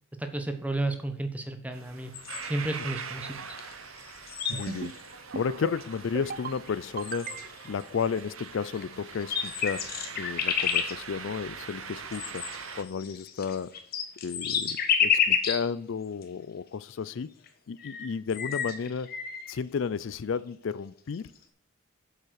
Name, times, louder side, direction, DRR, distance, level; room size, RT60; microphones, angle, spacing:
voice 1, 0.2-2.1 2.4-3.6, right 2 dB, 5° right, 1.0 m, -32 dB
sound 1, 1.7-12.8, right 6 dB, 75° right, 1.1 m, -43 dB
sound 2, 2.1-2.7 3.6-3.7 4.0-5.1 5.8-5.9 6.7-6.8 7.0-7.7 8.8-8.9 9.1-10.9 12.1-15.7 16.2-16.3 17.5-17.6 17.8-19.5, left 7 dB, 45° left, 1.3 m, -30 dB
voice 2, 4.5-9.9 10.2-12.5 12.7-13.7 14.2-17.3 17.7-19.1 19.5-21.3, left 6 dB, 60° left, 0.4 m, -33 dB
sound 3, 4.5-5.0 5.3-5.8 6.2-6.6 7.0-7.7, right 5 dB, 40° right, 0.4 m, -37 dB
7.8 x 7.2 x 6.4 m
head